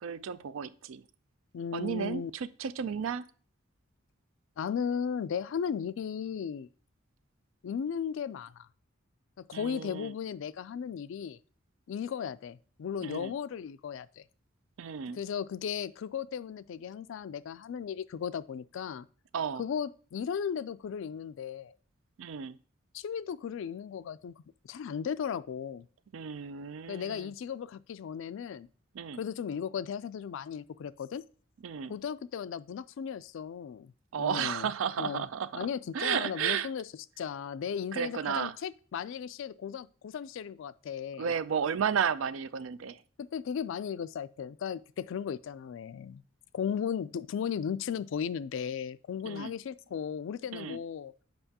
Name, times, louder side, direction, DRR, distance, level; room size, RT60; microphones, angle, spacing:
voice 1, 0.0-1.0 1.7-3.3 9.5-10.1 13.0-13.3 14.8-15.2 19.3-19.6 22.2-22.6 26.1-27.3 28.9-29.2 31.6-32.0 34.1-35.7 35.9-36.7 37.9-38.5 41.2-43.0 49.2-49.5 50.5-50.8, right 7 dB, 75° right, 0.4 m, -33 dB
voice 2, 1.5-2.3 4.6-6.7 7.6-8.7 9.5-11.4 11.9-14.2 15.0-19.1 19.6-21.7 22.9-25.9 26.9-28.7 29.1-31.2 31.9-33.9 34.2-34.7 35.0-35.3 35.6-36.8 37.2-41.3 43.3-46.2 46.5-51.1, left 7 dB, 70° left, 0.3 m, -36 dB
7.8 x 5.3 x 2.8 m
head